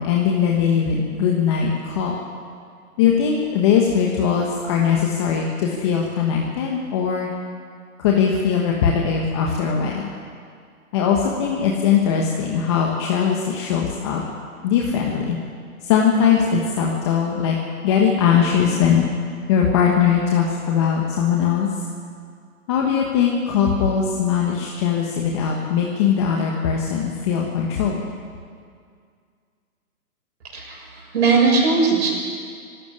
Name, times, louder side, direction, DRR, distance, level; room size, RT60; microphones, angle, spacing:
voice 1, 0.0-2.1 3.0-7.3 8.0-10.1 10.9-14.2 14.6-15.4 15.8-17.6 17.8-19.1 19.5-21.7 22.7-28.0, left 7 dB, 20° left, -1 dB, 1.3 m, -20 dB
voice 2, 30.5-32.1, right 4 dB, 45° right, -5 dB, 7.6 m, -19 dB
24.0 x 12.5 x 9.8 m, 2.1 s
hypercardioid pair, 160°, 45 cm